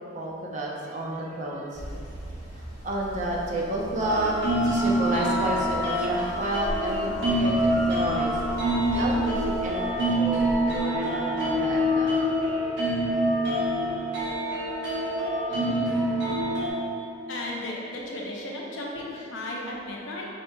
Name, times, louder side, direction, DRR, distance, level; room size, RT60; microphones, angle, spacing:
voice 1, 0.1-1.8 2.5-4.3 4.6-8.4 8.9-12.1, right 1 dB, 40° right, -2 dB, 0.6 m, -31 dB
sound 1, 1.7-11.0, equal, ahead, 0.9 m, -39 dB
sound 2, 4.0-16.7, equal, 65° right, 1.2 m, -26 dB
voice 2, 15.5-15.9 17.3-20.3, left 1 dB, 80° left, -3 dB, 0.7 m, -35 dB
5.0 x 4.1 x 2.3 m, 2.6 s
head